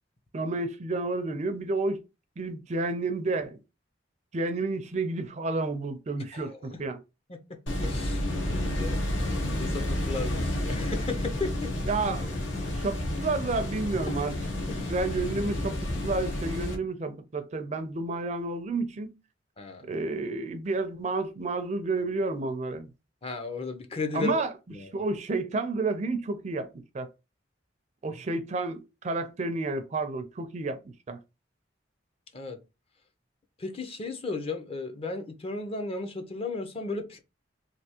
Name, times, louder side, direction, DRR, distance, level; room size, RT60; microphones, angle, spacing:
voice 1, 0.3-2.0 2.4-3.6 4.3-7.0 11.8-12.3 12.6-14.4 14.9-19.1 19.8-22.9 24.1-24.5 24.9-26.7 26.9-27.1 28.0-31.2, right 3 dB, 35° right, 0.4 m, -30 dB
voice 2, 6.3-6.8 7.3-7.4 7.8-9.0 9.4-11.7 14.1-14.2 14.7-14.9 19.6-19.9 23.2-24.3 24.7-24.9 32.3-32.6 33.6-37.2, left 3 dB, 30° left, 0.5 m, -35 dB
sound 1, 7.7-16.7, left 1 dB, 85° left, 1.1 m, -30 dB
3.3 x 2.7 x 2.8 m
head